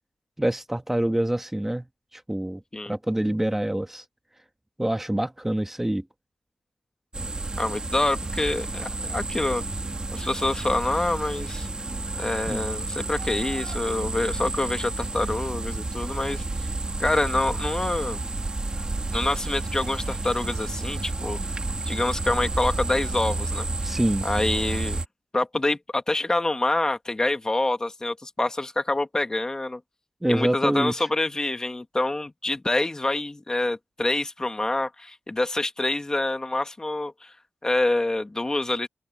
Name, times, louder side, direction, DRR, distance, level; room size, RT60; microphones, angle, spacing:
voice 1, 0.4-1.9 2.1-4.0 4.8-6.0 12.5-12.6 23.8-24.3 30.2-30.9, right 1 dB, 10° right, 1.6 m, -26 dB
sound 1, 7.1-25.1, right 2 dB, 30° right, 2.5 m, -31 dB
voice 2, 7.6-9.6 10.1-11.7 12.2-16.7 17.0-18.2 19.1-21.4 21.9-25.0 25.3-29.8 30.3-37.3 37.6-38.9, left 2 dB, 20° left, 1.9 m, -26 dB
open air
cardioid pair, 80°, 3 cm